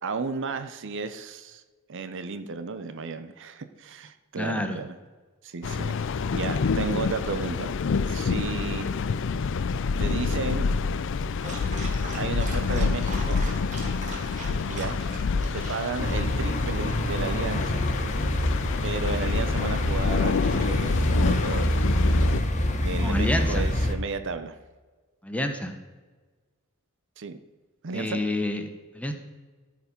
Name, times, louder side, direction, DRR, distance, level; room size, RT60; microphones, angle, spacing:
voice 1, 0.0-1.6 1.9-5.0 5.4-5.9 6.3-7.7 8.1-9.0 10.0-10.7 12.2-13.4 14.7-15.0 15.5-17.9 18.8-22.0 22.8-24.6 27.2-27.4 27.8-28.2, right 4 dB, 60° right, 10 dB, 0.7 m, -33 dB
voice 2, 4.3-4.8 23.0-23.7 25.2-25.7 27.9-28.7 28.9-29.1, left 1 dB, 5° left, 5 dB, 0.9 m, -28 dB
sound 1, 5.6-22.4, left 5 dB, 60° left, 0.4 m, -28 dB
Dog, 11.3-16.3, right 2 dB, 35° right, 1.9 m, -40 dB
sound 2, 16.0-23.9, left 1 dB, 35° left, 1.0 m, -26 dB
13.5 x 4.9 x 5.2 m, 1.3 s
head